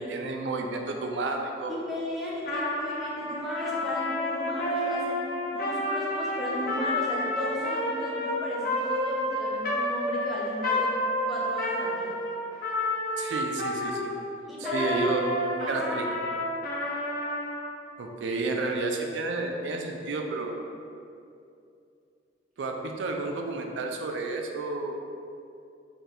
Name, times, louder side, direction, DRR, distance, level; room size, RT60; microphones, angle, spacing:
voice 1, 0.0-1.8 13.2-14.1 14.7-15.2 15.7-16.1 18.0-20.6 22.6-25.0, right 3 dB, 85° right, 2 dB, 0.4 m, -31 dB
voice 2, 1.7-10.9 11.3-12.2 14.5-15.1 15.5-16.2 16.6-16.7, left 1 dB, ahead, -6 dB, 0.5 m, -35 dB
Trumpet, 2.4-14.2 14.6-17.6, left 1 dB, 50° left, 0.6 m, -30 dB
3.7 x 2.3 x 4.1 m, 2.5 s
head